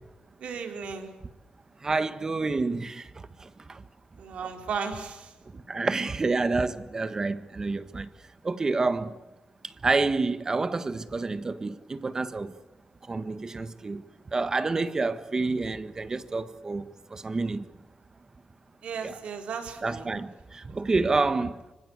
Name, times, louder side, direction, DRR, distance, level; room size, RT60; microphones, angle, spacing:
voice 1, 0.4-1.1 4.2-5.3 18.8-20.1, right 6 dB, 75° right, 4.4 m, -35 dB
voice 2, 1.8-3.8 5.5-8.1 8.4-9.2 9.6-12.5 13.1-14.0 14.3-17.6 19.0-19.2 19.8-21.6, right 3 dB, 30° right, 1.5 m, -28 dB
26.0 x 25.0 x 8.2 m
wide cardioid pair, 120°, 2 cm